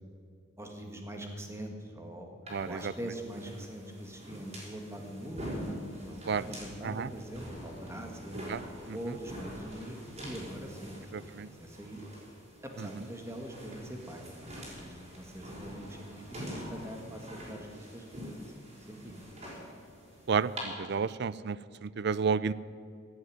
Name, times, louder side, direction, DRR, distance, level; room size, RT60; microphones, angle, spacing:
voice 1, 0.6-2.4 2.6-8.4 8.9-11.1 11.4-12.0 12.6-18.5 18.9-19.1, right 1 dB, 15° right, 2 dB, 1.9 m, -43 dB
sound 1, 2.5-20.6, equal, 35° right, 4.9 m, -45 dB
voice 2, 2.5-2.9 6.3-6.5 6.8-7.1 8.5-8.6 8.9-9.1 11.1-11.5 12.8-13.0 20.3-22.5, right 5 dB, 60° right, 18 dB, 0.4 m, -32 dB
16.0 x 8.1 x 9.4 m, 2.5 s
head